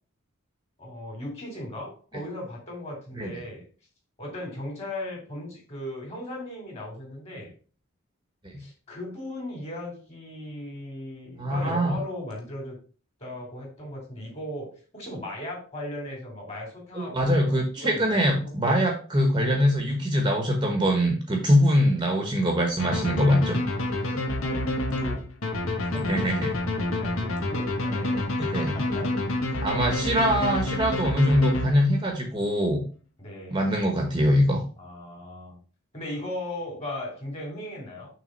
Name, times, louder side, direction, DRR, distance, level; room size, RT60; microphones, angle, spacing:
voice 1, 0.8-3.6 4.2-7.5 8.6-12.8 13.2-18.8 24.0-24.1 24.4-25.3 26.2-26.4 26.6-29.1 33.2-33.7 34.8-35.6 35.9-38.1, left 1 dB, 30° left, -1 dB, 3.0 m, -37 dB
voice 2, 11.4-12.0 16.9-23.6 25.9-26.5 28.5-28.7 29.6-32.8 33.5-34.6, equal, 20° right, 2 dB, 1.0 m, -23 dB
sound 1, 22.8-32.1, left 1 dB, 85° left, 1.2 m, -28 dB
6.5 x 3.5 x 5.2 m, 0.38 s
head